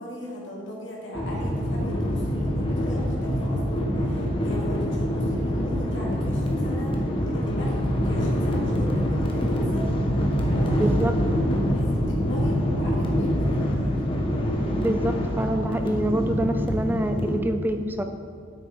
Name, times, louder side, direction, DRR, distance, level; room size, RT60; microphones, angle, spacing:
voice 1, 0.0-10.0 10.4-11.2 11.7-13.9, left 1 dB, 70° left, -4 dB, 2.8 m, -38 dB
sound 1, 1.1-17.4, equal, 30° left, 1.2 m, -25 dB
voice 2, 10.7-11.1 14.8-18.0, right 1 dB, 10° right, 7 dB, 0.3 m, -26 dB
9.1 x 8.7 x 4.7 m, 2.4 s
head